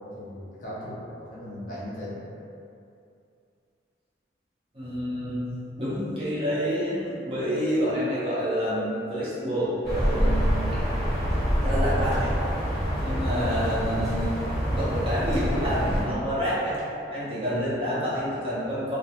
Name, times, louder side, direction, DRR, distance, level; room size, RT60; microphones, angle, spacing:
voice 1, 0.1-2.2, left 1 dB, 45° left, -8 dB, 0.7 m, -37 dB
voice 2, 4.7-10.6 11.6-12.3 13.0-14.4 14.7-16.8 17.1-19.0, equal, 30° right, -10 dB, 0.7 m, -28 dB
sound 1, 9.8-16.1, equal, 5° left, 1.1 m, -26 dB
2.3 x 2.3 x 2.8 m, 2.5 s
head